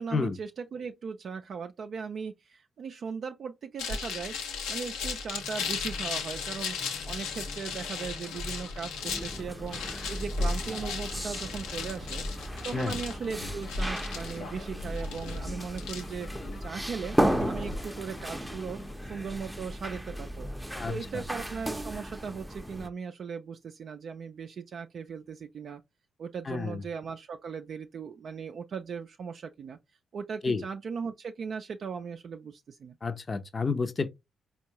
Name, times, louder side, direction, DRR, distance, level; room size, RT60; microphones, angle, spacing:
voice 1, 0.0-12.2 12.6-20.5 20.9-25.8 26.2-29.8 30.1-33.0, right 6 dB, 60° right, 0.3 m, -38 dB
sound 1, 3.8-17.8, left 4 dB, 85° left, 0.6 m, -36 dB
sound 2, 5.3-20.3, left 3 dB, 65° left, 1.0 m, -50 dB
sound 3, 9.0-22.9, equal, 5° right, 0.6 m, -35 dB
voice 2, 26.5-26.8 30.4-30.6 33.0-34.1, left 4 dB, 40° left, 0.6 m, -30 dB
4.3 x 2.3 x 2.8 m
hypercardioid pair, 45°, 0 cm